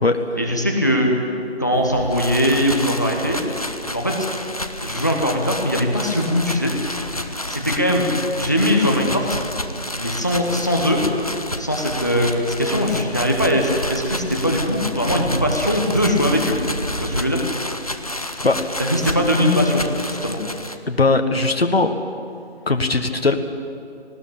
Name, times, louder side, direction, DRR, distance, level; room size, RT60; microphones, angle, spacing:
voice 1, 0.4-1.1 1.6-3.4 3.9-4.3 4.8-6.7 7.5-8.1 8.4-9.4 10.0-11.0 11.6-16.6 17.0-17.4 18.8-19.8 20.2-20.4, equal, 15° left, 1 dB, 1.0 m, -20 dB
Ocean, 1.7-17.2, right 1 dB, 60° right, 4.8 m, -37 dB
sound 1, 2.1-20.8, left 1 dB, 35° left, 0.8 m, -30 dB
voice 2, 20.9-21.9 22.7-23.4, left 3 dB, 65° left, 7 dB, 1.5 m, -18 dB
19.0 x 16.0 x 8.7 m, 2.6 s
figure-of-eight pair, 170°, 33 cm